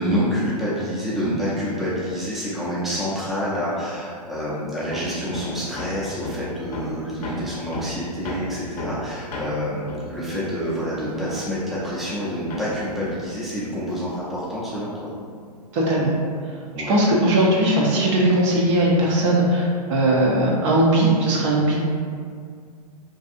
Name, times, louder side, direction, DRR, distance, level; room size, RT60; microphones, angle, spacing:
voice 1, 0.0-14.9 16.7-17.0, equal, ahead, -10 dB, 0.5 m, -27 dB
Hammer, 4.9-12.2 12.5-14.3, left 2 dB, 70° left, 0.5 m, -35 dB
voice 2, 15.7-16.1 16.9-21.8, right 1 dB, 45° right, -4 dB, 0.6 m, -19 dB
2.7 x 2.4 x 2.4 m, 2.1 s
hypercardioid pair, 110°, 21 cm